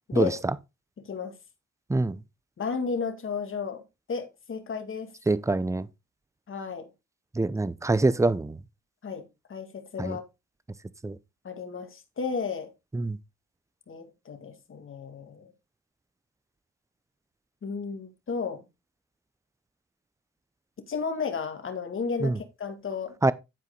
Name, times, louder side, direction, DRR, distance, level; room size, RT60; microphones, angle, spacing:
voice 1, 1.0-1.4 2.6-3.8 4.1-5.1 6.5-6.9 9.0-10.2 11.4-12.7 13.9-15.5 17.6-18.7 20.9-23.3, left 5 dB, 45° left, 2.2 m, -33 dB
voice 2, 1.9-2.2 5.3-5.9 7.4-8.6 10.0-10.2 11.0-11.2 12.9-13.2 22.2-22.4 23.2-23.3, right 2 dB, 10° right, 0.6 m, -25 dB
11.0 x 4.8 x 3.9 m
cardioid pair, 90°, 30 cm